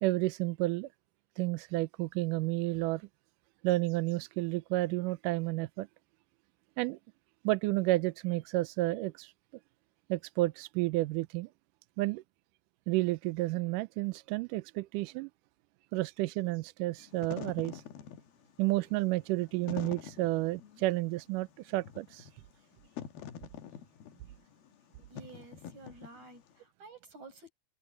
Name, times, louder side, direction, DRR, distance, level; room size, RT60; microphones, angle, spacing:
voice 1, 0.0-0.9 1.4-3.0 3.6-5.9 6.8-7.0 7.4-9.3 10.1-11.5 12.0-12.2 12.9-15.3 15.9-17.8 18.6-22.3, right 19 dB, 80° right, 2.0 m, -31 dB
Wind / Fire, 17.0-26.5, left 9 dB, 85° left, 3.2 m, -46 dB
voice 2, 25.1-27.5, right 3 dB, 50° right, 8.6 m, -51 dB
omnidirectional pair, 4.2 m